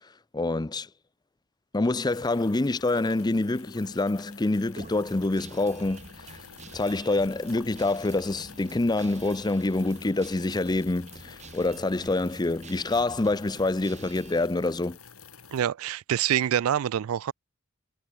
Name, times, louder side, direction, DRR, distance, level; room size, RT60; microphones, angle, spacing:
voice 1, 0.3-0.9 1.7-6.4 6.7-15.0, left 2 dB, 20° left, 0.5 m, -26 dB
sound 1, 1.8-15.6, left 6 dB, 80° left, 4.4 m, -50 dB
Guitar, 4.8-14.4, right 3 dB, 35° right, 2.6 m, -48 dB
voice 2, 15.5-17.3, right 10 dB, 70° right, 0.3 m, -26 dB
head